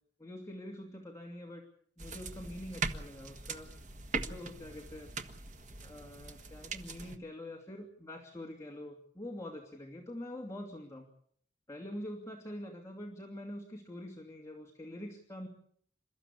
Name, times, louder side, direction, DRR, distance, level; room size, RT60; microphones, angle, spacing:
voice 1, 0.2-1.6 2.0-3.7 4.2-5.1 5.8-11.1 11.7-15.5, left 1 dB, 15° left, -1 dB, 2.6 m, -45 dB
sound 1, 2.0-7.2, right 4 dB, 45° right, 1.6 m, -41 dB
28.0 x 14.0 x 8.5 m, 0.64 s
head